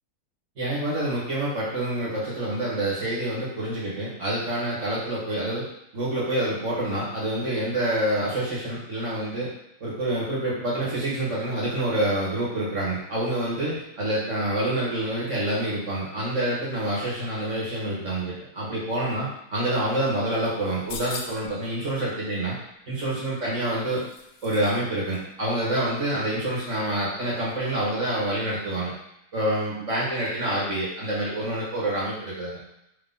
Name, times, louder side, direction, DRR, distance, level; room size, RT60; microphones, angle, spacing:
voice 1, 0.6-5.7 5.9-9.5 9.8-22.5 22.9-24.0 24.4-28.9 29.3-32.6, right 1 dB, 50° right, -7 dB, 1.6 m, -27 dB
sound 1, 20.6-21.6 23.1-24.8 25.1-25.2, left 4 dB, 70° left, 0.8 m, -40 dB
3.5 x 3.1 x 3.8 m, 0.83 s
omnidirectional pair, 1.7 m